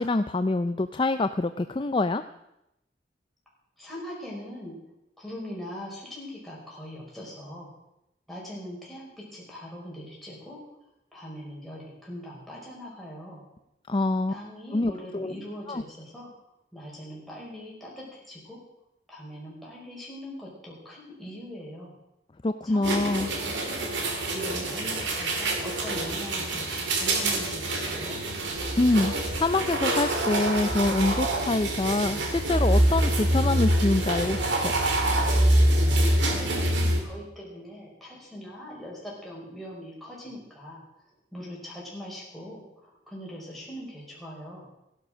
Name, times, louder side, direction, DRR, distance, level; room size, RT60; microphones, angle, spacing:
voice 1, 0.0-2.2 13.9-14.3 14.7-15.3 15.7-15.8 22.4-23.3 28.8-34.7, left 2 dB, 25° left, 10 dB, 0.4 m, -25 dB
voice 2, 3.8-4.7 5.2-7.7 8.3-10.6 11.1-13.4 14.3-16.3 16.7-18.6 19.1-21.9 22.6-23.8 24.3-28.2 36.2-40.8 41.3-44.7, equal, ahead, -5 dB, 5.2 m, -41 dB
sound 1, 22.8-37.0, right 1 dB, 85° right, 2.7 m, -25 dB
15.5 x 11.5 x 6.2 m, 0.86 s
head